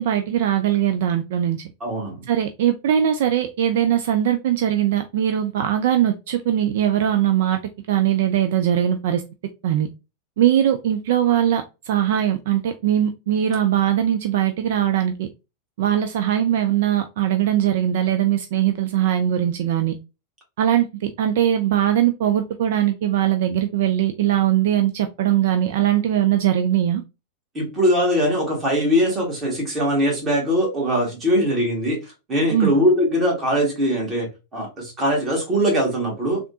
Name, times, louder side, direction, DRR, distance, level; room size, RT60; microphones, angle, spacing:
voice 1, 0.0-1.6 2.3-7.6 7.9-9.2 9.6-9.9 10.4-15.3 15.8-19.9 20.6-27.0 32.5-32.7, right 11 dB, 55° right, 0.3 m, -20 dB
voice 2, 1.8-2.2 27.5-32.0 32.3-36.4, equal, 20° right, 1.7 m, -21 dB
3.4 x 2.4 x 2.6 m
figure-of-eight pair, 90°, 0 cm